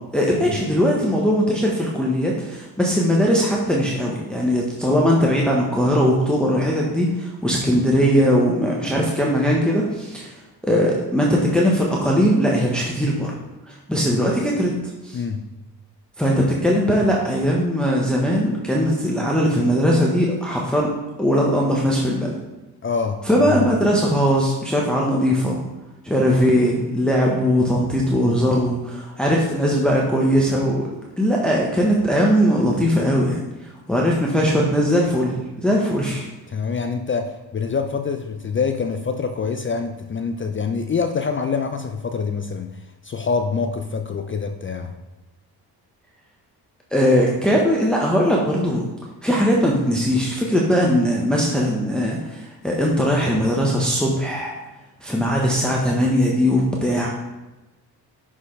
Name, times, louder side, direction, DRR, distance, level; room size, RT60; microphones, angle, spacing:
voice 1, 0.1-13.3 13.7-14.7 15.0-15.2 16.2-20.9 21.2-22.4 23.2-25.6 26.0-30.9 31.2-36.3 46.9-48.8 49.2-54.5 55.0-57.1, equal, ahead, -3 dB, 1.1 m, -20 dB
voice 2, 15.1-15.5 22.8-23.7 36.5-44.9, left 5 dB, 30° left, 6 dB, 0.5 m, -26 dB
6.0 x 5.5 x 3.2 m, 1.1 s
supercardioid pair, 70°, 43 cm